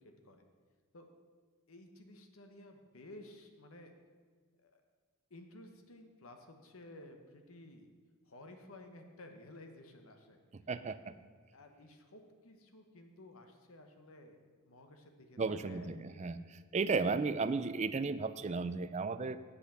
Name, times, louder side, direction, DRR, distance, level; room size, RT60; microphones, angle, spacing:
voice 1, 1.7-3.9 4.6-4.8 5.3-7.9 8.3-10.4 10.9-11.0 11.5-16.2, left 1 dB, 70° left, 5 dB, 1.1 m, -55 dB
voice 2, 10.7-11.1 15.4-16.4 16.7-19.4, right 4 dB, 30° right, 12 dB, 0.4 m, -34 dB
8.3 x 8.0 x 7.0 m, 1.5 s
head